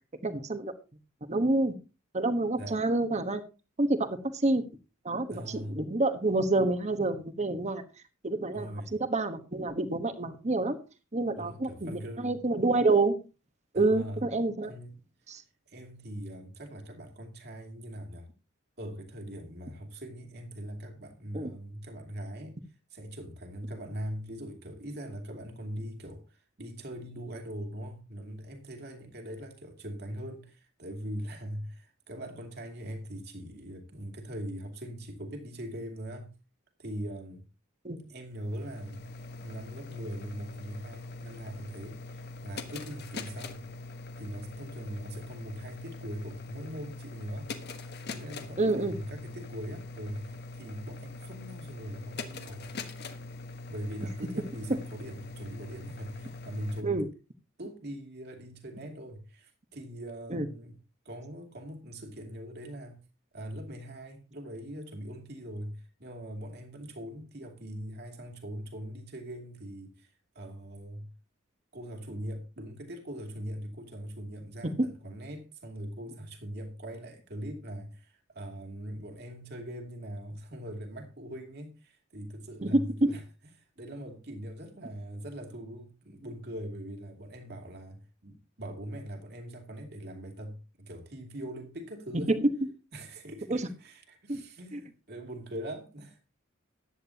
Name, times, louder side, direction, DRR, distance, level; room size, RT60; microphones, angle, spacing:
voice 1, 0.2-0.7 1.2-1.7 2.1-3.4 3.8-4.6 5.0-7.8 8.2-10.8 11.1-13.1 13.7-14.7 15.3-15.4 21.3-21.5 37.8-38.0 48.6-49.0 56.8-57.1 60.3-60.5 74.6-74.9 82.6-83.1 92.3-92.5 93.5-93.7 94.3-94.4 94.7-94.8, right 2 dB, 35° right, 1.2 m, -28 dB
voice 2, 5.3-5.8 8.5-8.9 11.4-12.4 13.7-14.2 14.6-14.9 15.7-18.3 18.8-22.6 22.9-36.4 36.8-37.5 38.0-39.0 39.4-43.7 44.2-52.8 53.7-57.0 57.6-60.8 61.0-63.0 63.3-71.1 71.7-83.2 83.8-92.3 92.9-96.2, equal, 55° right, 2.5 m, -41 dB
sound 1, 38.3-56.8, left 3 dB, 50° left, 1.2 m, -43 dB
14.0 x 10.0 x 2.9 m
head